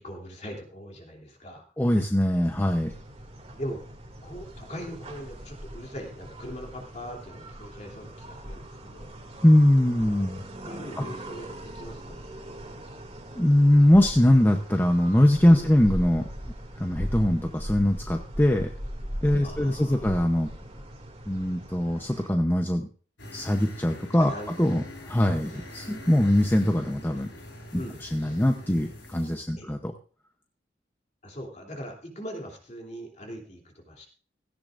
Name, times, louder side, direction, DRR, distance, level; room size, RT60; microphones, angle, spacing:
voice 1, 0.0-1.6 3.5-3.8 4.2-9.1 10.6-12.3 15.5-15.7 19.4-20.0 24.2-24.5 25.4-25.5 27.7-28.0 29.5-29.7 31.2-34.1, equal, 40° left, 1 dB, 3.0 m, -40 dB
voice 2, 1.8-2.9 9.4-10.4 11.0-11.1 13.4-16.3 16.8-18.7 19.2-20.5 21.3-22.9 23.3-24.3 24.6-27.3 27.7-27.8 28.1-29.9, left 1 dB, 10° left, 4 dB, 0.8 m, -22 dB
sound 1, 2.4-22.3, equal, 35° right, 2.5 m, -40 dB
sound 2, 23.2-29.4, left 1 dB, 85° left, 4.7 m, -43 dB
16.5 x 14.0 x 2.5 m, 0.41 s
head